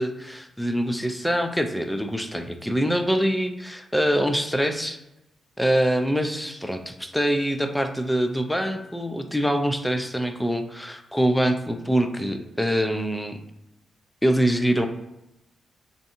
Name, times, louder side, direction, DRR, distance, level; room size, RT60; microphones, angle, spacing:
voice 1, 0.0-5.0 5.6-13.4 14.2-14.9, equal, 5° left, 6 dB, 0.4 m, -24 dB
2.6 x 2.4 x 2.5 m, 0.90 s
hypercardioid pair, 45°, 0 cm